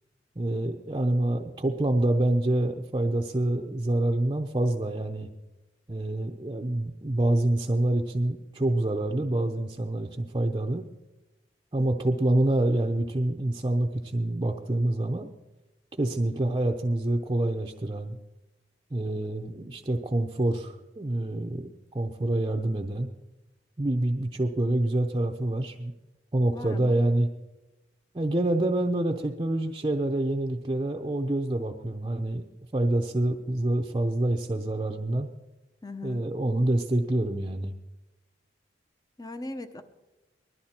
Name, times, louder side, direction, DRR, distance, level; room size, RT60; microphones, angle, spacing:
voice 1, 0.4-5.3 5.9-10.8 11.7-15.3 16.0-18.1 18.9-21.7 21.9-23.1 23.8-25.9 26.3-27.3 28.1-32.4 32.7-35.3 36.0-37.7, right 1 dB, 25° right, 2 dB, 0.7 m, -26 dB
voice 2, 26.4-27.0 35.8-36.3 39.2-39.8, left 2 dB, 20° left, 9 dB, 0.8 m, -39 dB
20.5 x 12.5 x 4.4 m, 1.0 s
head